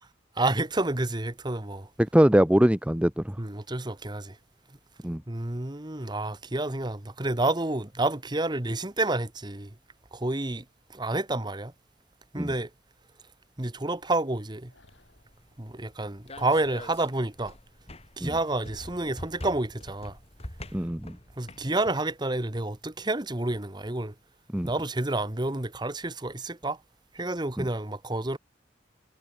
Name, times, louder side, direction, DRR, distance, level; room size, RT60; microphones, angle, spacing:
voice 1, 0.4-1.9 3.4-4.4 5.3-9.7 10.1-10.6 10.9-11.7 12.3-12.7 13.6-14.7 15.6-17.5 18.2-20.2 21.4-24.1 24.6-26.8 27.1-28.4, right 2 dB, 25° right, 1.4 m, -29 dB
voice 2, 2.0-3.4 5.0-5.2 12.4-12.5 18.2-18.3 20.7-21.2 24.5-24.7 27.6-27.7, equal, 5° right, 0.7 m, -22 dB
sound 1, 14.7-15.3 16.4-17.2 18.4-19.6, left 2 dB, 75° left, 5.5 m, -56 dB
sound 2, 14.9-22.0, left 1 dB, 35° left, 6.5 m, -45 dB
head